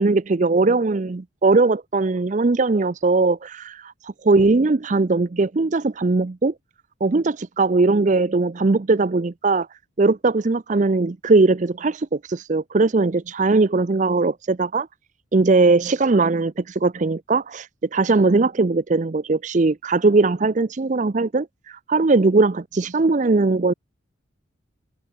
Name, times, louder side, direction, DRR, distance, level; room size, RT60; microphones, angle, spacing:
voice 1, 0.0-6.5 7.0-14.9 15.3-23.7, right 3 dB, 40° right, 0.5 m, -20 dB
head